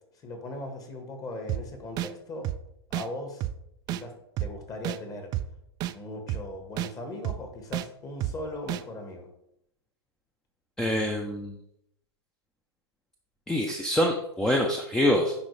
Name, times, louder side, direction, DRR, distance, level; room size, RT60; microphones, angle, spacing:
voice 1, 0.1-2.5 2.9-3.4 3.9-5.3 5.9-9.3, left 1 dB, 25° left, 5 dB, 1.5 m, -39 dB
sound 1, 1.5-1.6 2.0-2.1 2.4-2.6 2.9-3.1 3.4-3.5 3.9-4.0 4.4-4.5 4.8-5.0 5.3-5.5 5.8-5.9 6.3-6.4 6.8-6.9 7.2-7.4 7.7-7.9 8.2-8.3 8.7-8.8, right 14 dB, 30° right, 0.3 m, -30 dB
voice 2, 10.8-11.6 13.5-15.3, left 1 dB, 5° left, 1 dB, 0.6 m, -25 dB
10.0 x 3.9 x 3.3 m, 0.77 s
hypercardioid pair, 105°, 14 cm